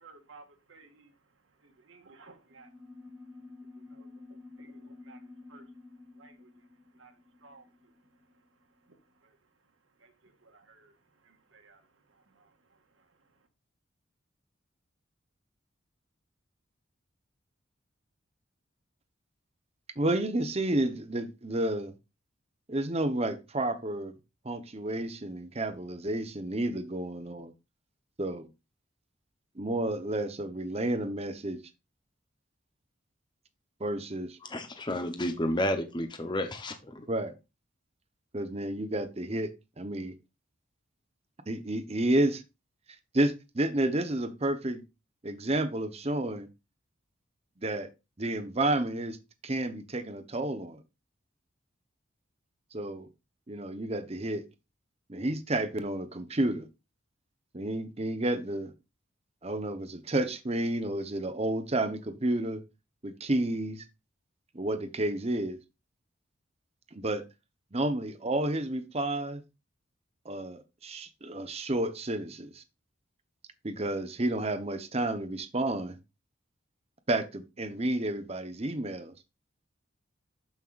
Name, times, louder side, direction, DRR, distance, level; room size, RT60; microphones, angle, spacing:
voice 1, 0.0-13.5, right 3 dB, 85° right, 1.7 m, -59 dB
sound 1, 2.5-8.5, left 3 dB, 5° right, 1.7 m, -51 dB
voice 2, 20.0-21.9 22.7-24.2 24.4-27.5 28.2-28.5 29.6-31.6 33.8-34.4 37.1-37.3 38.3-39.5 39.8-40.2 41.5-42.4 43.1-44.8 45.2-46.5 47.6-47.9 48.2-49.2 49.4-50.8 52.7-53.1 53.5-54.4 55.1-56.7 57.5-58.7 59.4-62.6 63.0-63.8 64.5-65.6 66.9-67.2 67.7-69.4 70.2-72.6 73.6-76.0 77.1-79.1, right 1 dB, 30° right, 0.9 m, -31 dB
voice 3, 34.4-37.1, left 1 dB, 25° left, 0.8 m, -31 dB
13.0 x 5.6 x 2.5 m
head